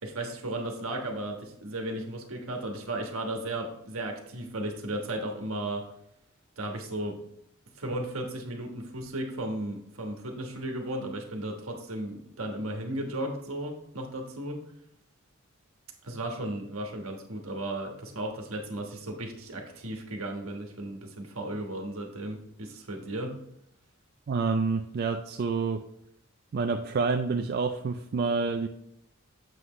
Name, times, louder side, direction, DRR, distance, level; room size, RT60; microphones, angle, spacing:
voice 1, 0.0-5.8 6.6-7.2 7.8-14.6 16.0-23.3, right 1 dB, 70° right, 2 dB, 1.3 m, -35 dB
voice 2, 24.3-25.8 26.5-28.7, right 4 dB, 45° right, 5 dB, 0.4 m, -28 dB
7.7 x 5.8 x 3.1 m, 0.76 s
head